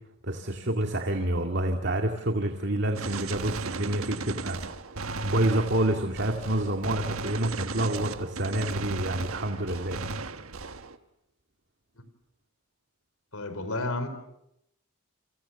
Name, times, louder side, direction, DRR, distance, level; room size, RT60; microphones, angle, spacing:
voice 1, 0.2-4.6 5.2-10.0, right 1 dB, 50° right, 4 dB, 2.2 m, -28 dB
Gunshot gunfire, 3.0-11.0, right 3 dB, 70° right, 1.4 m, -36 dB
voice 2, 13.3-14.1, left 2 dB, 75° left, 11 dB, 4.5 m, -31 dB
29.5 x 26.0 x 7.1 m, 0.83 s
head